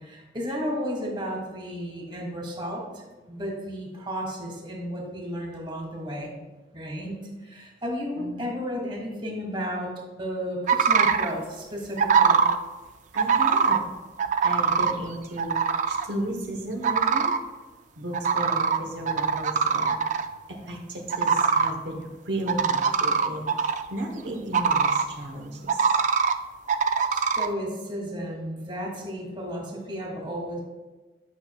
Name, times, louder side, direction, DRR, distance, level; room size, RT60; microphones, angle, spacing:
voice 1, 0.0-6.3 6.7-9.9 10.2-12.5 27.1-30.6, equal, 30° right, -1 dB, 1.6 m, -33 dB
voice 2, 8.2-8.5 13.1-13.9 14.4-15.6 15.9-17.3 18.0-25.9, right 1 dB, 85° right, 0 dB, 1.1 m, -34 dB
sound 1, 10.7-11.3 12.0-12.6 13.2-13.8 14.2-14.9 15.4-16.1 16.8-17.4 18.1-18.8 19.1-20.3 21.1-21.7 22.5-23.8 24.5-25.0 25.7-26.3 26.7-27.5, right 6 dB, 45° right, 0.3 m, -22 dB
9.6 x 5.9 x 2.3 m, 1.2 s
head